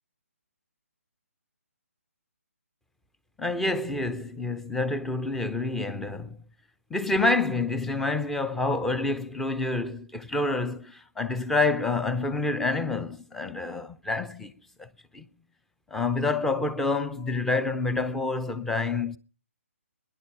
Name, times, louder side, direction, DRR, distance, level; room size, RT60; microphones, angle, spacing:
voice 1, 3.4-6.4 6.9-14.5 14.8-15.2 15.9-19.2, left 3 dB, 5° left, 0.7 m, -28 dB
21.5 x 11.0 x 6.0 m
figure-of-eight pair, 140°, 8 cm